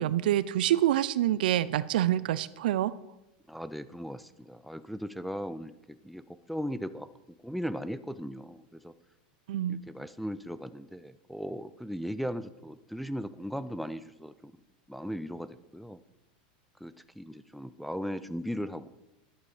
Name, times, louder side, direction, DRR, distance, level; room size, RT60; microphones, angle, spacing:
voice 1, 0.0-2.9 9.5-9.8, right 12 dB, 80° right, 17 dB, 0.5 m, -26 dB
voice 2, 3.5-7.1 7.4-8.9 9.7-14.5 14.9-16.0 16.8-18.9, equal, ahead, 12 dB, 0.4 m, -38 dB
11.0 x 8.1 x 4.9 m, 0.95 s
supercardioid pair, 125°, 5 cm